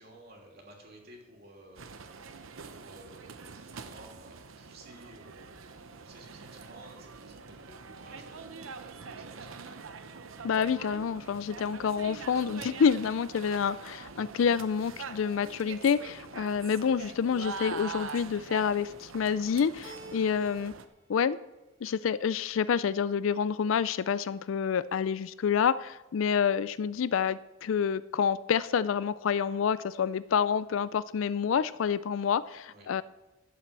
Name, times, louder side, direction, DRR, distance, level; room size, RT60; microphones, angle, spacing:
voice 1, 0.0-2.1 2.5-8.5 8.8-9.6 32.7-32.9, right 1 dB, 50° right, 0 dB, 2.9 m, -54 dB
sound 1, 1.8-20.9, right 5 dB, 80° right, 0.8 m, -44 dB
voice 2, 10.4-20.7 21.1-21.4 21.8-33.0, left 7 dB, 75° left, 17 dB, 0.4 m, -28 dB
Keyboard (musical), 19.8-20.9 21.2-22.0, right 2 dB, 20° right, 2.4 m, -49 dB
12.5 x 7.5 x 7.4 m, 1.1 s
head